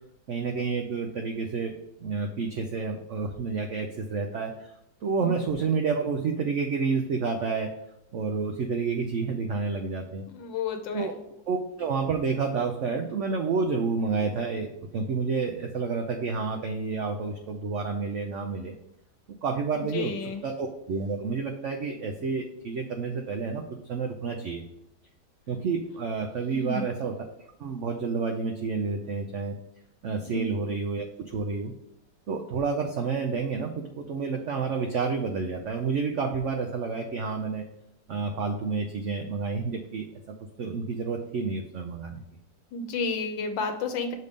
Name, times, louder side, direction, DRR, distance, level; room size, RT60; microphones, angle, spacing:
voice 1, 0.3-1.7 2.0-4.5 5.0-7.7 8.1-10.2 10.9-11.1 11.5-18.7 19.4-20.1 20.4-23.6 23.9-24.6 25.5-27.1 27.6-29.6 30.0-31.7 32.3-37.6 38.1-40.1 40.6-42.2, right 4 dB, 65° right, 3 dB, 0.7 m, -29 dB
voice 2, 10.3-11.1 19.7-20.4 26.5-26.8 30.2-30.5 42.7-44.1, left 4 dB, 90° left, 5 dB, 1.4 m, -31 dB
6.6 x 3.5 x 5.2 m, 0.81 s
omnidirectional pair, 1.9 m